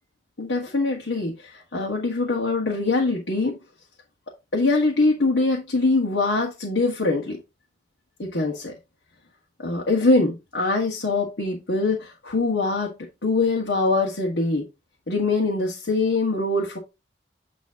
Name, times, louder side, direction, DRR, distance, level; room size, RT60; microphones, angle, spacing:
voice 1, 0.4-3.6 4.5-7.4 8.2-8.7 9.6-12.9 13.2-14.6 15.1-16.8, left 3 dB, 85° left, 1.7 m, -23 dB
9.2 x 3.3 x 3.7 m
head